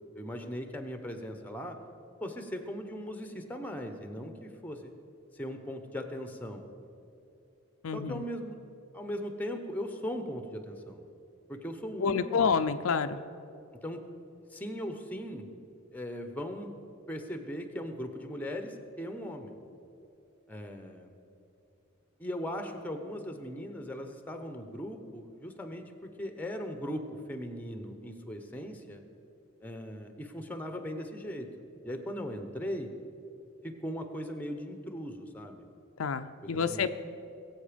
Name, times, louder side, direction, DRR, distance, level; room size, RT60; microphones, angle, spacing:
voice 1, 0.1-1.8 2.2-4.9 5.3-6.7 7.9-8.6 8.9-11.0 11.5-12.6 13.7-14.0 14.5-15.5 15.9-16.7 17.1-19.6 20.5-21.1 22.2-29.0 29.6-31.5 31.8-32.9 33.6-35.7 36.4-36.9, equal, 10° left, 6 dB, 0.9 m, -39 dB
voice 2, 7.8-8.2 12.0-13.2 36.0-36.9, left 5 dB, 75° left, 9 dB, 0.5 m, -28 dB
21.0 x 7.9 x 5.2 m, 2.7 s
head